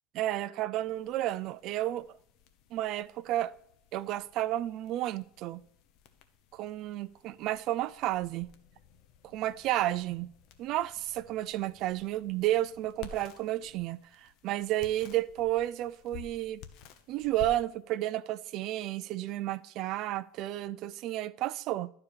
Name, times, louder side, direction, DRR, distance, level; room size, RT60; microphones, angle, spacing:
voice 1, 0.2-2.1 2.7-3.5 3.9-5.6 6.5-8.5 9.2-10.3 10.6-16.6 17.1-21.9, right 14 dB, 50° right, 0.4 m, -32 dB
sound 1, 0.8-20.4, left 7 dB, 50° left, 1.0 m, -54 dB
11.5 x 4.7 x 4.9 m
supercardioid pair, 145°, 0 cm